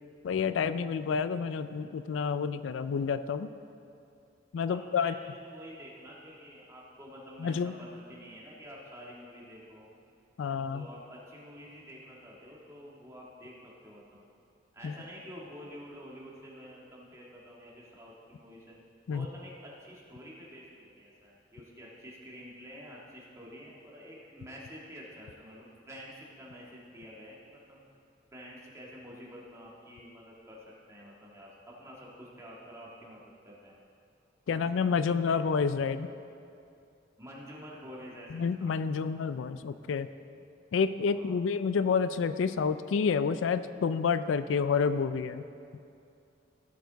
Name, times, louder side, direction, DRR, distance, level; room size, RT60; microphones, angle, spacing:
voice 1, 0.2-3.5 4.5-5.1 7.4-7.7 10.4-10.9 14.8-14.9 19.1-19.3 34.5-36.1 38.3-40.1 40.7-45.4, left 5 dB, 80° left, 12 dB, 0.4 m, -29 dB
voice 2, 4.7-9.9 10.7-14.3 14.7-18.8 19.1-27.8 28.3-30.6 30.9-31.5 31.8-33.8 34.7-35.4 37.2-39.1 40.3-40.4 41.1-41.4, equal, 15° right, -4 dB, 1.8 m, -49 dB
17.0 x 6.9 x 4.0 m, 2.6 s
head